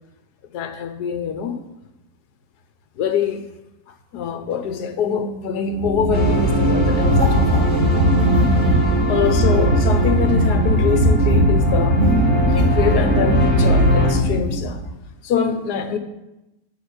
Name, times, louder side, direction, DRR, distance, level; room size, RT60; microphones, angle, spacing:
voice 1, 0.5-1.6 3.0-3.4 4.1-7.7 9.1-12.0 12.5-14.8 15.2-16.0, left 7 dB, 70° left, 9 dB, 1.4 m, -24 dB
sound 1, 5.7-14.8, equal, 45° right, 2.1 m, -18 dB
sound 2, 6.1-14.1, right 1 dB, 5° left, 2.2 m, -25 dB
7.9 x 7.1 x 6.4 m, 0.95 s
omnidirectional pair, 1.8 m